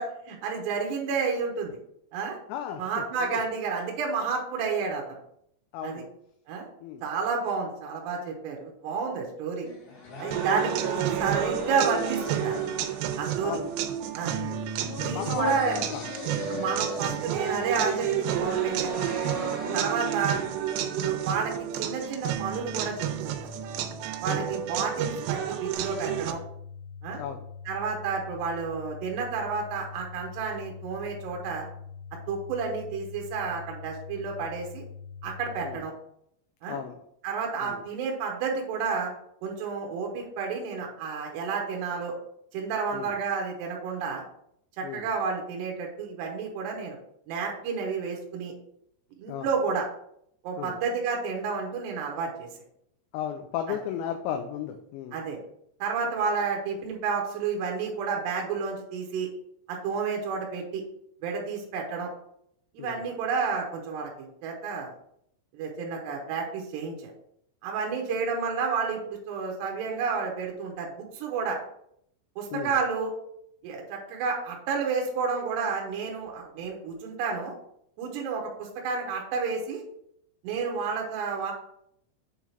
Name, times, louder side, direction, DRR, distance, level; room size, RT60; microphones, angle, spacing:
voice 1, 0.0-1.8 2.1-2.4 2.8-5.2 5.8-6.1 6.5-6.7 7.0-9.7 10.2-12.6 13.2-13.6 14.1-14.4 15.0-15.8 16.5-19.1 19.7-20.4 20.8-23.4 24.2-26.4 27.0-27.2 27.7-31.7 32.3-34.8 35.2-35.9 36.6-36.8 37.2-39.1 39.4-42.1 42.5-44.2 44.8-47.0 47.3-48.5 49.2-49.9 50.4-52.5 55.1-55.4 55.8-59.3 59.7-60.8 61.2-62.1 62.7-64.9 65.5-67.1 67.6-71.6 72.4-73.1 73.6-77.5 78.0-79.8 80.4-81.5, right 5 dB, 75° right, 1 dB, 2.9 m, -30 dB
voice 2, 2.5-3.3 5.7-6.1 6.8-7.0 13.4-13.8 14.4-14.7 15.1-16.1 16.5-16.7 19.7-19.9 24.3-24.6 27.2-27.4 35.6-35.8 36.7-37.0 37.6-37.8 42.9-43.1 44.8-45.1 49.3-49.5 50.6-50.8 53.1-55.2 62.8-63.0 72.5-72.8, left 9 dB, 85° left, 6 dB, 2.6 m, -35 dB
sound 1, 9.6-21.5, left 4 dB, 50° left, 2.5 m, -40 dB
sound 2, 10.3-26.3, right 10 dB, 90° right, 3.1 m, -30 dB
sound 3, 25.7-35.8, left 6 dB, 65° left, 2.0 m, -43 dB
8.1 x 3.7 x 4.4 m, 0.72 s
omnidirectional pair, 5.6 m